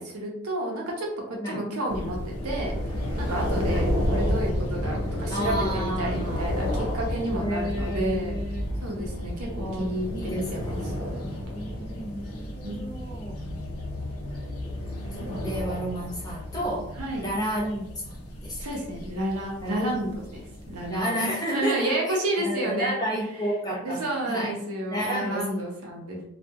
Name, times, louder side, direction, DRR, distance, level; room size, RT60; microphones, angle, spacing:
voice 1, 0.0-2.7 3.2-3.8 4.1-8.4 8.8-11.2 12.6-12.8 13.5-13.6 15.2-15.5 17.0-17.2 18.6-23.0 23.7-26.2, right 1 dB, 80° right, -1 dB, 0.8 m, -31 dB
sound 1, 1.9-21.0, equal, 80° left, 0.6 m, -31 dB
voice 2, 5.3-6.5 7.3-8.6 8.9-9.0 9.6-10.5 10.8-11.0 11.5-13.4 14.3-14.4 15.2-18.6 19.6-19.8 20.9-24.0 24.3-24.5 24.9-25.5, equal, 15° left, -5 dB, 0.7 m, -31 dB
2.8 x 2.4 x 2.3 m, 0.74 s
head